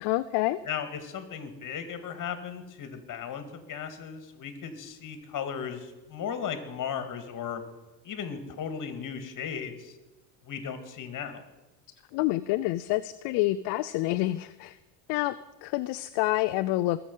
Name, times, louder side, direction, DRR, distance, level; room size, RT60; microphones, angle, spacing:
voice 1, 0.0-0.6 12.1-14.8 15.1-15.4 15.6-17.0, left 17 dB, 65° left, 12 dB, 0.6 m, -27 dB
voice 2, 0.6-7.6 8.0-9.9 10.4-11.4, left 7 dB, 45° left, 9 dB, 2.1 m, -36 dB
21.0 x 7.1 x 5.5 m, 1.1 s
supercardioid pair, 105°, 45 cm